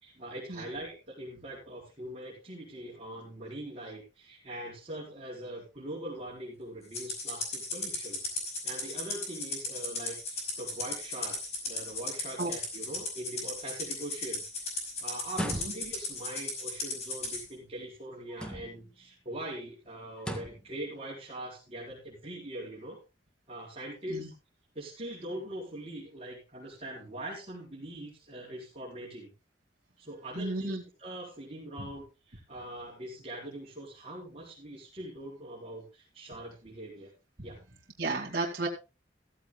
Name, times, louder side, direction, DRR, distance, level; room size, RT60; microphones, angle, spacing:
voice 1, 0.0-8.2 8.6-11.4 11.6-23.0 23.5-24.3 24.7-29.3 30.0-30.7 31.0-37.1 37.4-37.6, right 1 dB, 35° right, -5 dB, 4.4 m, -42 dB
Rattle (instrument), 6.9-17.4, left 3 dB, 40° left, 5.2 m, -36 dB
sound 1, 15.3-16.1 18.3-18.9 20.2-20.7, equal, 5° left, 1.9 m, -37 dB
voice 2, 30.4-30.8 38.0-38.7, right 3 dB, 55° right, -4 dB, 2.2 m, -32 dB
15.0 x 14.5 x 2.2 m, 0.29 s
head